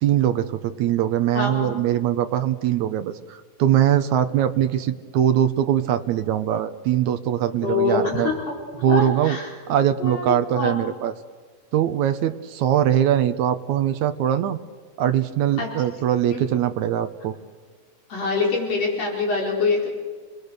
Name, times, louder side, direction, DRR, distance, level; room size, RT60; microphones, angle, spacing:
voice 1, 0.0-8.3 8.8-9.4 9.7-11.1 11.7-14.6 15.0-17.4, right 10 dB, 70° right, 9 dB, 1.9 m, -22 dB
voice 2, 1.3-1.8 7.6-8.6 8.9-9.5 10.0-10.9 15.6-15.7 16.3-16.4 18.1-19.9, left 4 dB, 45° left, -2 dB, 6.1 m, -25 dB
30.0 x 20.5 x 6.7 m, 1.5 s
omnidirectional pair, 4.1 m